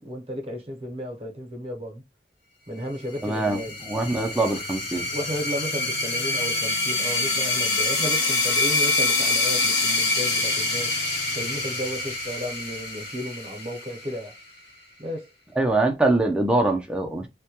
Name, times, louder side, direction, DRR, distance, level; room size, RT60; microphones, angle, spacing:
voice 1, 0.0-2.0 2.7-3.8 5.1-10.9 11.3-14.4 15.0-15.3 17.2-17.3, equal, 35° right, 0.7 m, -33 dB
sound 1, 3.2-14.4, left 3 dB, 65° left, 0.8 m, -26 dB
voice 2, 3.2-5.0 15.6-17.3, right 2 dB, 5° right, 0.4 m, -23 dB
2.2 x 2.1 x 2.8 m
head